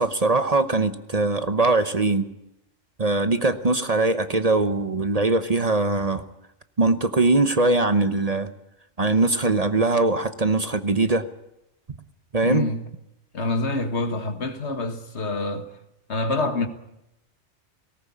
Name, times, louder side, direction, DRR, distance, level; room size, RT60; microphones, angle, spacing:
voice 1, 0.0-2.3 3.0-6.2 6.8-8.5 9.0-11.2 12.3-12.6, right 3 dB, 35° right, 1.0 m, -21 dB
voice 2, 12.4-12.9 13.3-15.7 16.1-16.7, left 2 dB, 70° left, 1.9 m, -26 dB
19.0 x 18.5 x 8.5 m
omnidirectional pair, 1.2 m